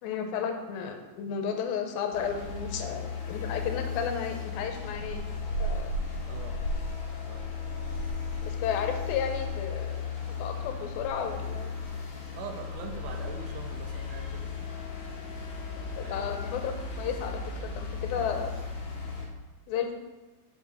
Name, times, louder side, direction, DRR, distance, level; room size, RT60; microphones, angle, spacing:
voice 1, 0.0-5.3 5.6-5.9 8.4-10.0 10.4-11.7 15.8-18.5 19.7-19.9, left 7 dB, 80° left, 5 dB, 2.4 m, -33 dB
sound 1, 2.1-19.3, left 4 dB, 65° left, 1.8 m, -35 dB
voice 2, 6.2-6.6 7.2-7.4 12.4-14.5 16.0-16.3, right 5 dB, 75° right, 3 dB, 2.0 m, -42 dB
6.5 x 5.3 x 4.8 m, 1.2 s
omnidirectional pair, 4.4 m